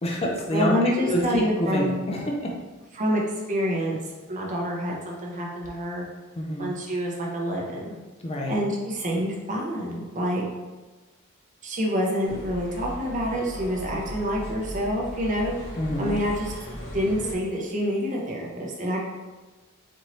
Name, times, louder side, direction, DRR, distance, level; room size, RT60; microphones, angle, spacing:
voice 1, 0.0-2.5 6.4-6.7 8.2-8.6 15.8-16.2, equal, 25° left, -1 dB, 0.5 m, -27 dB
voice 2, 0.5-2.0 3.0-3.2 3.5-4.0 4.3-6.1 6.6-7.9 8.5-10.4 11.6-15.5 16.0-16.5 16.9-19.0, equal, 35° right, -2 dB, 0.8 m, -27 dB
sound 1, 12.2-17.3, equal, 55° left, 1.4 m, -37 dB
4.4 x 2.7 x 3.1 m, 1.2 s
head